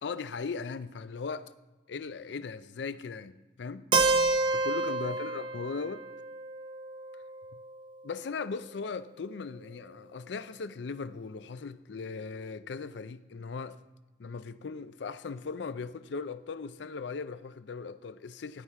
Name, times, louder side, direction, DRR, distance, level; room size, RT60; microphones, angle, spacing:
voice 1, 0.0-1.5 1.9-3.9 4.5-6.0 8.0-13.8 14.2-18.6, left 4 dB, 75° left, 0.4 m, -38 dB
Keyboard (musical), 3.9-7.8, right 3 dB, 25° right, 0.5 m, -29 dB
16.0 x 5.8 x 4.7 m
head